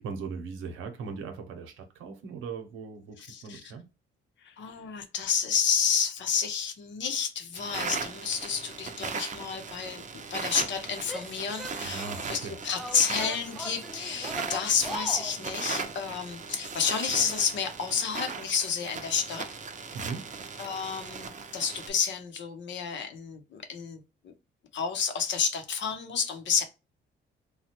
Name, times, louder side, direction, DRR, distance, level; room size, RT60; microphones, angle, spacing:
voice 1, 0.0-3.8 11.8-12.6 19.9-20.3, right 5 dB, 90° right, 0.8 m, -39 dB
voice 2, 3.3-3.6 4.4-10.0 10.3-12.4 12.6-19.5 20.6-24.3 24.7-26.6, left 6 dB, 65° left, 0.8 m, -30 dB
sound 1, 7.5-21.9, right 5 dB, 40° right, 0.6 m, -38 dB
Female speech woman speaking / Yell, 11.0-12.3 12.7-15.4, left 1 dB, ahead, 0.3 m, -40 dB
3.1 x 2.3 x 2.8 m
cardioid pair, 90°, 20 cm